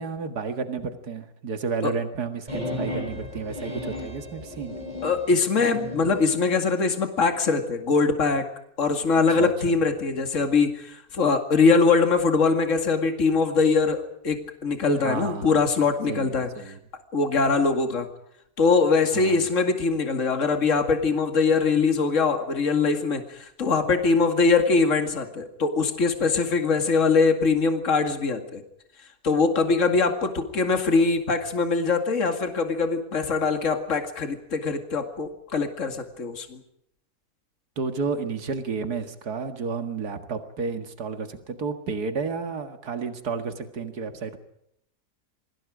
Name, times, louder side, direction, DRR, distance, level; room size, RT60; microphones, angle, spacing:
voice 1, 0.0-4.7 9.3-9.8 15.0-15.6 16.1-16.8 19.1-19.4 37.8-44.4, right 4 dB, 80° right, 8 dB, 2.4 m, -31 dB
sound 1, 2.5-6.2, left 1 dB, 25° right, 8.3 m, -34 dB
voice 2, 5.0-8.5 8.8-16.7 17.1-18.1 18.6-28.6 29.2-36.6, left 4 dB, 50° left, 6 dB, 2.5 m, -22 dB
28.5 x 24.5 x 5.1 m, 0.76 s
omnidirectional pair, 1.6 m